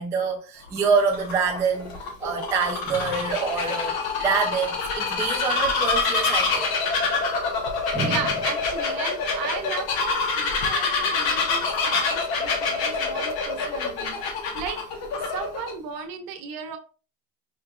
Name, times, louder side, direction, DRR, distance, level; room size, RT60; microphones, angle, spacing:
voice 1, 0.0-6.7 7.9-8.2, right 5 dB, 10° right, 0.3 m, -26 dB
Bird vocalization bird call bird song, 0.7-15.7, left 4 dB, 60° left, 1.0 m, -26 dB
voice 2, 7.7-16.8, right 7 dB, 55° right, 0.8 m, -36 dB
4.6 x 2.8 x 2.3 m
cardioid pair, 165°, 41 cm